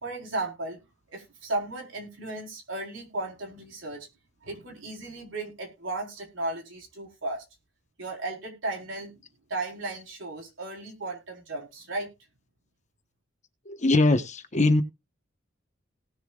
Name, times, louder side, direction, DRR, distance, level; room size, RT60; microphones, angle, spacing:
voice 1, 0.0-0.8 1.1-4.1 4.4-7.4 8.0-9.2 9.5-12.1, right 2 dB, 80° right, 1 dB, 4.1 m, -35 dB
voice 2, 13.7-14.8, left 2 dB, 40° left, 8 dB, 1.2 m, -22 dB
18.5 x 6.8 x 2.4 m, 0.26 s
head